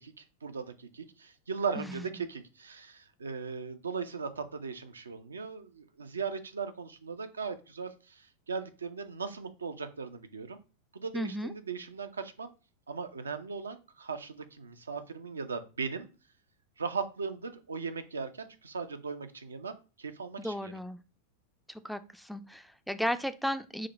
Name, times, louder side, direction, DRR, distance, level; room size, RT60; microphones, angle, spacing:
voice 1, 0.0-10.6 10.9-12.5 12.9-16.1 16.8-20.7, right 5 dB, 75° right, 9 dB, 0.5 m, -38 dB
voice 2, 11.1-11.5 20.4-21.0 21.7-23.9, equal, ahead, 10 dB, 0.3 m, -34 dB
4.9 x 2.2 x 4.0 m, 0.33 s
figure-of-eight pair, 90°, 0 cm